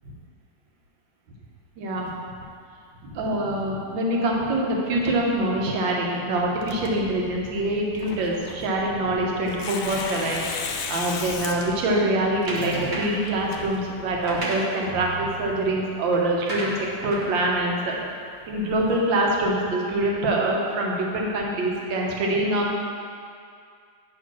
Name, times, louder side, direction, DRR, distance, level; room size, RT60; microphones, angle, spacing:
voice 1, 1.8-2.1 3.0-16.8 17.0-18.0 18.5-22.7, right 1 dB, 65° right, -1 dB, 1.6 m, -25 dB
Tearing, 6.6-14.4, left 5 dB, 80° left, 1.5 m, -36 dB
sound 1, 12.5-13.3 14.1-18.8, right 1 dB, 40° right, 0.6 m, -34 dB
9.3 x 3.1 x 5.9 m, 2.3 s
omnidirectional pair, 2.3 m